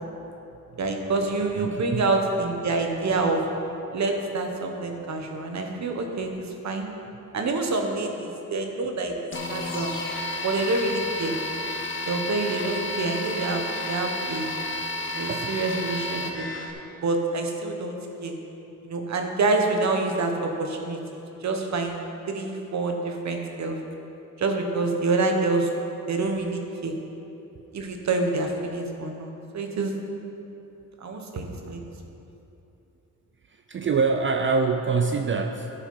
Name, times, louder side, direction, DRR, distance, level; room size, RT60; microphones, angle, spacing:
voice 1, 0.8-3.4 3.9-6.9 7.3-9.1 9.5-9.9 10.4-11.3 12.0-14.5 15.1-16.5 17.0-18.3 18.8-21.0 21.4-21.9 22.3-23.8 24.4-25.7 26.1-26.9 27.7-29.9 31.0-31.8, right 3 dB, 55° right, 3 dB, 1.2 m, -27 dB
voice 2, 1.5-2.0 15.3-15.5 33.7-35.7, right 4 dB, 35° right, 5 dB, 0.4 m, -25 dB
sound 1, 9.3-16.7, left 2 dB, 35° left, 1.0 m, -31 dB
13.0 x 6.0 x 5.5 m, 3.0 s
wide cardioid pair, 150°, 34 cm